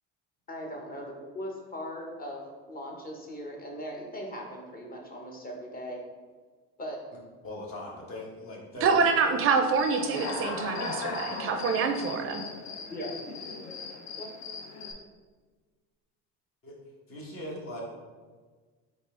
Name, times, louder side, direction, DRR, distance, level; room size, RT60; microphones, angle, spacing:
voice 1, 0.5-2.4 2.7-6.0 6.8-7.0 12.9-13.1 14.2-14.3, equal, 30° left, 0 dB, 1.1 m, -39 dB
voice 2, 7.4-9.0 16.6-16.7 17.1-17.8, left 1 dB, 45° left, -2 dB, 1.4 m, -39 dB
voice 3, 8.8-12.4, right 5 dB, 45° right, 6 dB, 0.4 m, -26 dB
Human voice / Cricket, 9.8-14.9, left 4 dB, 65° left, 0.7 m, -37 dB
4.0 x 3.5 x 3.7 m, 1.4 s
supercardioid pair, 105°, 30 cm